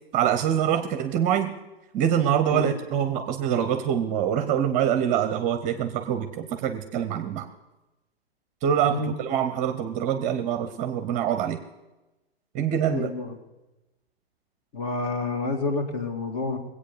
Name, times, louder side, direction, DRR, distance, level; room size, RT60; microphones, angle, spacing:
voice 1, 0.1-1.5 1.9-7.5 8.6-11.6 12.5-13.1, right 9 dB, 25° right, 10 dB, 0.8 m, -25 dB
voice 2, 12.9-13.4 14.7-16.6, left 3 dB, 40° left, 5 dB, 2.3 m, -29 dB
20.5 x 8.5 x 6.8 m, 1.0 s
figure-of-eight pair, 110°, 31 cm